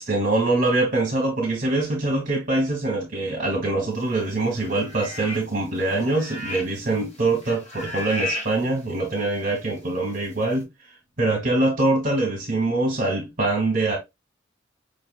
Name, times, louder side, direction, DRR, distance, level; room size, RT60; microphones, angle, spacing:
voice 1, 0.0-10.7 11.2-14.0, right 2 dB, 45° right, 1.2 m, -24 dB
sound 1, 4.5-5.6 5.8-6.9 7.1-8.5 9.1-9.2, left 2 dB, 40° left, 2.1 m, -33 dB
5.1 x 3.4 x 2.3 m
head